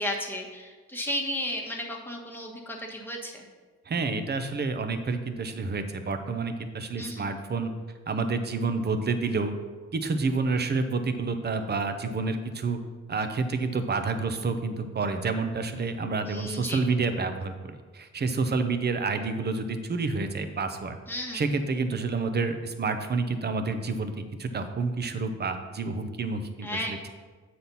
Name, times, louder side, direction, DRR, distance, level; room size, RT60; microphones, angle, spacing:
voice 1, 0.0-3.4 7.0-7.3 16.2-16.8 21.1-21.5 26.6-27.1, left 1 dB, 5° left, -1 dB, 1.3 m, -34 dB
voice 2, 3.9-7.7 8.1-9.5 9.9-12.8 13.1-21.0 21.3-27.1, right 4 dB, 35° right, 8 dB, 0.8 m, -29 dB
7.7 x 4.3 x 5.4 m, 1.4 s
cardioid pair, 90°, 30 cm